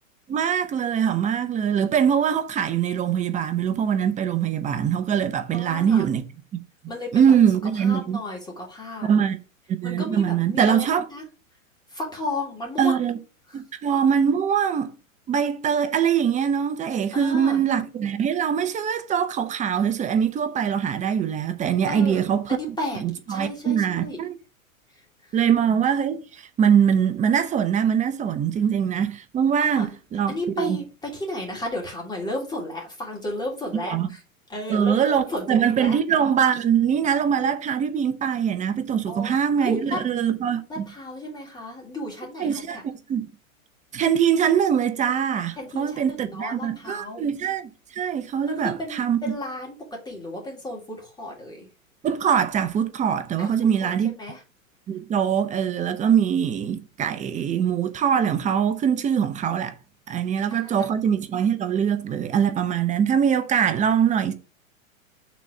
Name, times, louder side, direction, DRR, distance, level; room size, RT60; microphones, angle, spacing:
voice 1, 0.3-6.2 7.1-8.2 9.0-9.4 9.8-11.0 12.8-13.2 13.5-14.9 15.3-22.6 23.0-24.4 25.3-30.8 33.9-34.1 34.7-40.8 42.4-42.8 43.1-43.3 43.9-49.2 52.0-54.1 54.9-59.7 60.1-64.3, right 8 dB, 20° right, 0.7 m, -23 dB
voice 2, 5.5-6.1 6.9-7.3 7.8-9.1 9.8-11.2 11.9-13.0 13.5-13.6 17.1-17.6 21.9-22.2 22.5-23.0 23.3-24.2 25.3-25.5 29.6-29.9 30.3-34.2 34.5-36.0 39.1-40.0 40.7-42.8 45.6-47.2 48.5-49.8 50.0-51.7 53.4-54.4 60.1-60.2 60.5-60.9, left 1 dB, 10° left, 2.9 m, -33 dB
6.1 x 4.1 x 5.9 m
hypercardioid pair, 110°, 42 cm